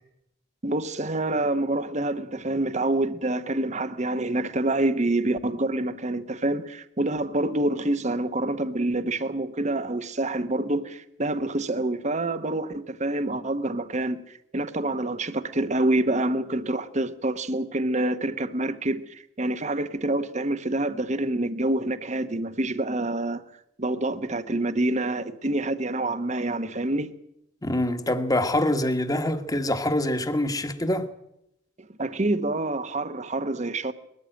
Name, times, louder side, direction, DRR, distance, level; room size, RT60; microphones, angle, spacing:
voice 1, 0.6-23.4 23.8-27.1 32.0-33.9, right 2 dB, 40° right, 1.0 m, -27 dB
voice 2, 27.6-31.1, left 1 dB, 20° left, 1.5 m, -25 dB
21.0 x 14.0 x 9.0 m
head